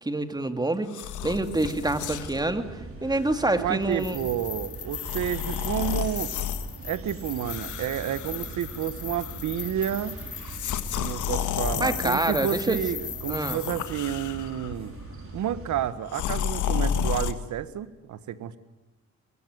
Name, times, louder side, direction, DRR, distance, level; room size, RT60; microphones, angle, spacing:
voice 1, 0.0-0.9 1.2-4.3 11.8-12.8 13.3-13.6, right 2 dB, 15° right, 8 dB, 2.3 m, -27 dB
sound 1, 0.9-2.4 3.1-3.3 4.9-6.7 7.4-8.9 9.1-9.6 10.4-12.6 13.3-14.7 16.1-17.3, left 9 dB, 80° left, 1.7 m, -31 dB
sound 2, 1.2-15.9, right 3 dB, 45° right, 5.0 m, -41 dB
voice 2, 3.5-6.3 6.8-10.2 10.9-14.9 15.3-18.6, right 10 dB, 70° right, 13 dB, 1.6 m, -30 dB
sound 3, 3.9-13.7, left 8 dB, 50° left, 2.1 m, -39 dB
22.5 x 22.5 x 9.4 m, 1.0 s
cardioid pair, 90°, 30 cm